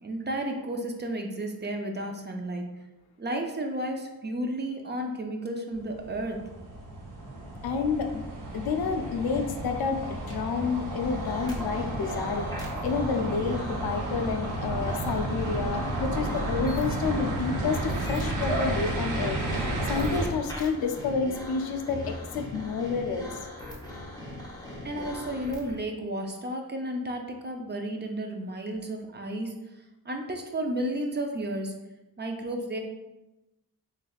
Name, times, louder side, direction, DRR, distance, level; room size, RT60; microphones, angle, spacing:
voice 1, 0.0-2.7 3.2-6.4 24.8-29.5 30.1-31.7 32.2-32.8, right 1 dB, 30° right, 3 dB, 0.4 m, -32 dB
sound 1, 5.7-20.3, right 1 dB, 55° right, 0.8 m, -32 dB
voice 2, 7.6-8.2 8.5-23.3, left 5 dB, 75° left, 5 dB, 0.5 m, -30 dB
sound 2, 11.0-25.8, left 1 dB, 10° left, 0.7 m, -40 dB
3.3 x 3.2 x 2.3 m, 0.99 s
cardioid pair, 85°, 37 cm